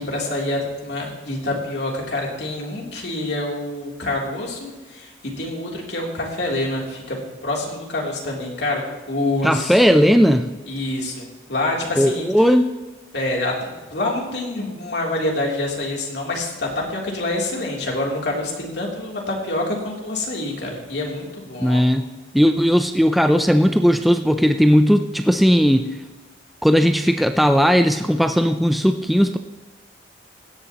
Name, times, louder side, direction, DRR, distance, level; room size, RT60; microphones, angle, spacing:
voice 1, 0.0-7.2 7.4-9.8 10.6-12.3 13.1-21.8, left 2 dB, 65° left, -2 dB, 3.1 m, -26 dB
voice 2, 9.4-10.5 12.0-12.7 21.6-22.1 22.3-26.0 26.6-29.4, equal, ahead, 7 dB, 0.4 m, -17 dB
16.5 x 11.5 x 2.9 m, 1.2 s
head